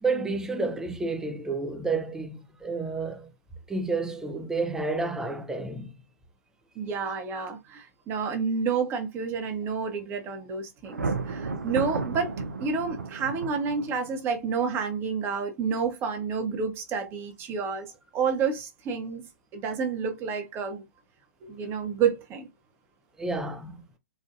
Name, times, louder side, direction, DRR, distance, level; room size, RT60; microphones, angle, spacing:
voice 1, 0.0-3.3 3.7-5.9 23.2-23.9, right 3 dB, 5° right, 0.6 m, -30 dB
voice 2, 6.8-19.3 19.5-20.8 21.4-22.5, right 6 dB, 25° right, 1.0 m, -29 dB
Thunder, 10.8-14.2, right 4 dB, 75° right, 0.6 m, -33 dB
4.4 x 2.5 x 2.4 m
figure-of-eight pair, 115°, 9 cm